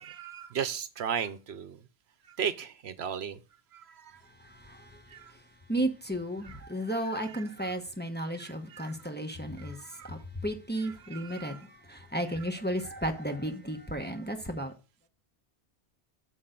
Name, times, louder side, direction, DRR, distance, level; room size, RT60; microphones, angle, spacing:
voice 1, 0.0-1.8 2.3-3.4 3.7-4.2 5.1-5.3 6.4-6.6 7.1-7.7 8.3-8.9 9.6-10.2 10.8-11.7 12.3-12.5, right 8 dB, 70° right, 1.0 m, -37 dB
voice 2, 5.7-9.8 10.1-10.2 10.4-11.6 11.9-14.7, right 1 dB, 10° left, 1.0 m, -33 dB
8.6 x 6.7 x 3.8 m
omnidirectional pair, 1.1 m